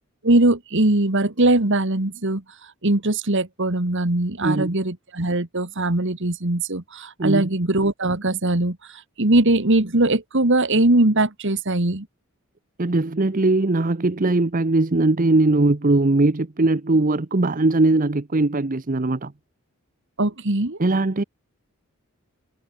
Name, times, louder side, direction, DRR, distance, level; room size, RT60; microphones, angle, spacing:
voice 1, 0.2-2.4 2.8-8.8 9.2-12.1 20.2-20.8, right 2 dB, 55° right, 2.0 m, -20 dB
voice 2, 4.4-4.7 7.2-7.5 12.8-19.3 20.8-21.2, right 2 dB, 40° right, 0.8 m, -20 dB
head